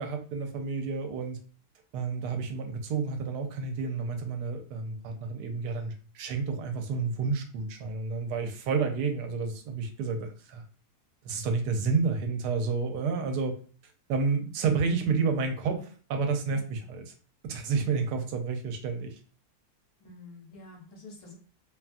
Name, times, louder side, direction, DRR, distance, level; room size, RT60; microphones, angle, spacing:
voice 1, 0.0-1.4 1.9-10.6 11.2-13.5 14.1-17.1 17.4-19.1, right 5 dB, 80° right, 5 dB, 1.1 m, -30 dB
voice 2, 16.5-16.9 20.0-21.3, left 2 dB, 70° left, -1 dB, 1.1 m, -49 dB
2.8 x 2.2 x 2.5 m, 0.40 s
omnidirectional pair, 1.8 m